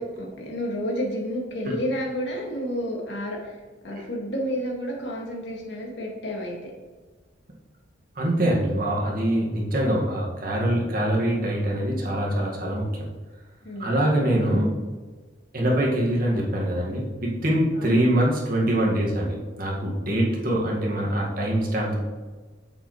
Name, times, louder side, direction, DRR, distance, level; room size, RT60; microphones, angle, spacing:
voice 1, 0.0-6.7 13.6-14.0 17.8-18.0, equal, 75° left, -2 dB, 2.1 m, -31 dB
voice 2, 8.2-13.1 13.8-14.8 15.5-22.0, right 1 dB, 55° right, -3 dB, 1.9 m, -24 dB
8.6 x 7.6 x 3.2 m, 1.3 s
head